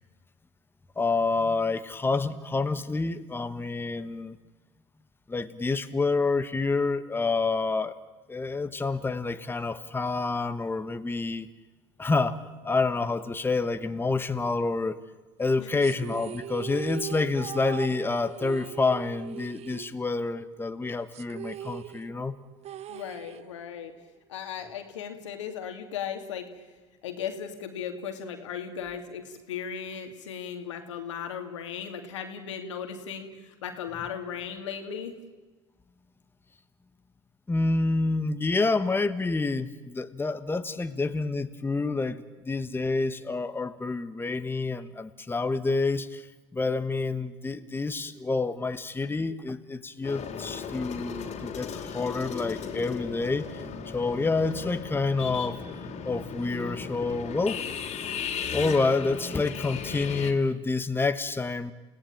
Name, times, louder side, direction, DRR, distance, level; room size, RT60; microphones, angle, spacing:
voice 1, 1.0-4.4 5.3-7.9 8.3-11.5 12.0-15.0 15.4-22.3 37.5-46.3 46.5-53.6 53.9-55.6 56.0-57.6 58.5-61.7, left 3 dB, 15° left, 10 dB, 1.3 m, -28 dB
sound 1, 15.8-20.5 20.7-20.8 21.1-23.8, right 11 dB, 45° right, 0.8 m, -40 dB
voice 2, 22.9-23.9 24.3-26.5 27.0-35.1, left 8 dB, 85° left, 6 dB, 2.6 m, -36 dB
sound 2, 50.0-60.3, left 6 dB, 45° left, 3.0 m, -36 dB
29.0 x 17.5 x 8.8 m, 1.2 s
hypercardioid pair, 80°, 15 cm